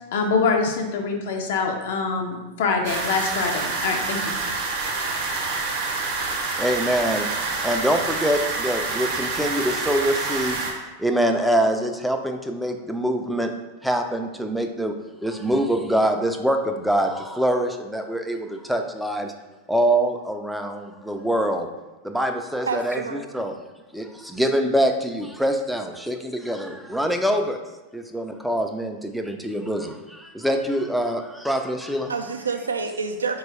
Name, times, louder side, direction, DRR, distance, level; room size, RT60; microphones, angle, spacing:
voice 1, 0.1-4.4, left 4 dB, 60° left, 2 dB, 0.4 m, -24 dB
sound 1, 2.8-10.7, right 3 dB, 50° right, 0.7 m, -27 dB
voice 2, 6.6-7.3 7.6-10.6 11.0-13.5 13.8-15.0 15.2-19.3 19.7-21.7 22.0-23.6 23.9-27.6 27.9-32.1, right 1 dB, ahead, 4 dB, 0.3 m, -24 dB
voice 3, 22.7-23.5 32.1-33.4, right 5 dB, 80° right, 6 dB, 0.3 m, -28 dB
3.9 x 2.3 x 3.1 m, 1.1 s
figure-of-eight pair, 95°, 0 cm